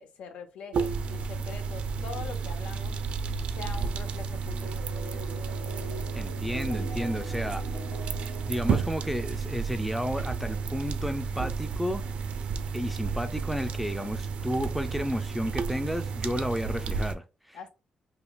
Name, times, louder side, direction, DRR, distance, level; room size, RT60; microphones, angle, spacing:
voice 1, 0.0-3.0 3.5-4.7 17.5-17.7, left 5 dB, 85° left, 0.8 m, -43 dB
sound 1, 0.7-17.2, right 5 dB, 65° right, 0.4 m, -32 dB
sound 2, 4.6-9.8, left 1 dB, 45° left, 1.7 m, -43 dB
voice 2, 6.1-7.6 8.5-12.0 12.7-17.6, equal, ahead, 0.4 m, -32 dB
5.4 x 2.2 x 2.3 m
cardioid pair, 140°, 2 cm